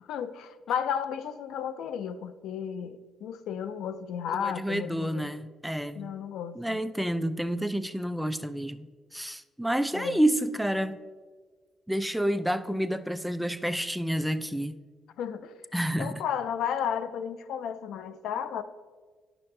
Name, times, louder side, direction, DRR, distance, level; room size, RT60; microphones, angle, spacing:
voice 1, 0.1-5.3 6.0-6.8 9.9-10.2 15.2-15.5 16.0-18.6, left 8 dB, 80° left, 0.4 m, -33 dB
voice 2, 4.3-6.1 6.6-11.0 11.9-14.8 15.7-16.2, right 1 dB, 5° right, 0.4 m, -29 dB
10.5 x 6.0 x 3.2 m
cardioid pair, 90°, 0 cm